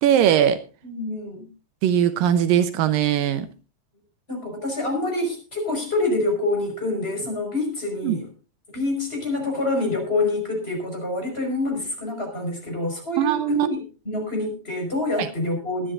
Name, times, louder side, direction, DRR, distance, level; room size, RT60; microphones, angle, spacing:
voice 1, 0.0-0.6 1.8-3.5 8.0-8.2 13.2-13.7, right 10 dB, 80° right, 10 dB, 2.5 m, -20 dB
voice 2, 0.8-1.5 4.3-8.3 8.7-15.9, left 2 dB, 15° left, 2 dB, 5.4 m, -26 dB
23.5 x 10.5 x 2.6 m, 0.32 s
omnidirectional pair, 4.0 m